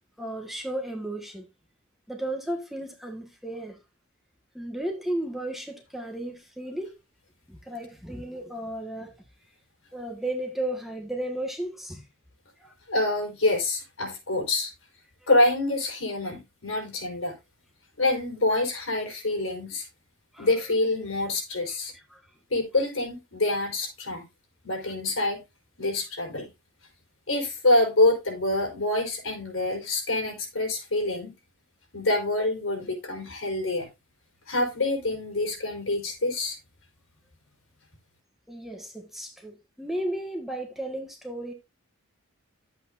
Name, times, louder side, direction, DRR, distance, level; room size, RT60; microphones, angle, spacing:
voice 1, 0.2-1.5 2.1-3.8 4.5-6.9 7.5-9.1 9.9-12.0 12.6-12.7 20.3-20.5 22.1-22.2 38.5-41.5, right 1 dB, ahead, 1.5 m, -34 dB
voice 2, 12.9-14.7 15.3-17.3 18.0-19.8 20.4-21.9 22.5-24.3 24.6-25.4 25.8-26.5 27.3-31.3 31.9-33.9 34.5-36.6, left 2 dB, 70° left, 4.8 m, -26 dB
11.5 x 8.3 x 2.6 m
head